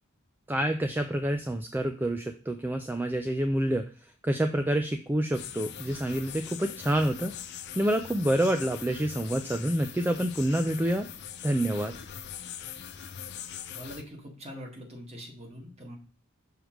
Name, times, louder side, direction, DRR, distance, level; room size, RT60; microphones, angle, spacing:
voice 1, 0.5-7.3 7.8-11.1 11.4-11.9, right 1 dB, 10° right, 7 dB, 0.3 m, -28 dB
sound 1, 5.3-14.0, left 9 dB, 50° left, 0.6 m, -42 dB
voice 2, 13.8-15.9, equal, 30° right, 1 dB, 1.7 m, -43 dB
6.4 x 4.9 x 3.0 m, 0.39 s
head